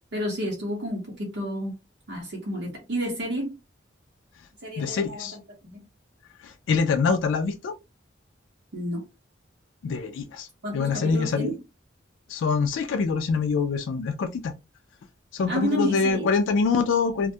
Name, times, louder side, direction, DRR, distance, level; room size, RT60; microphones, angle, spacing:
voice 1, 0.1-1.8 2.1-3.5 4.6-5.8 8.7-9.0 10.6-11.6 15.5-16.3, equal, 65° right, 0.7 m, -30 dB
voice 2, 4.8-5.4 6.4-7.7 9.8-10.5 10.7-11.5 12.3-14.5 15.3-17.3, left 5 dB, 80° left, 0.3 m, -25 dB
2.2 x 2.1 x 2.7 m
head